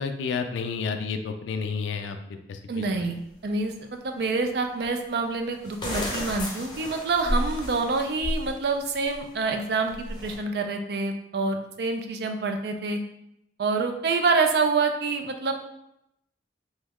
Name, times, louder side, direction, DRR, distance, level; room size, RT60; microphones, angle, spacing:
voice 1, 0.0-2.8, left 5 dB, 90° left, 7 dB, 0.3 m, -31 dB
voice 2, 2.7-3.2 3.4-3.7 4.0-10.0 10.2-13.0 13.6-15.5, right 4 dB, 60° right, 5 dB, 0.4 m, -26 dB
sound 1, 2.8-2.9 4.8-4.9 5.6-8.5 8.9-9.2 9.9-10.4, equal, 25° left, 0.6 m, -31 dB
3.0 x 2.3 x 3.4 m, 0.80 s
head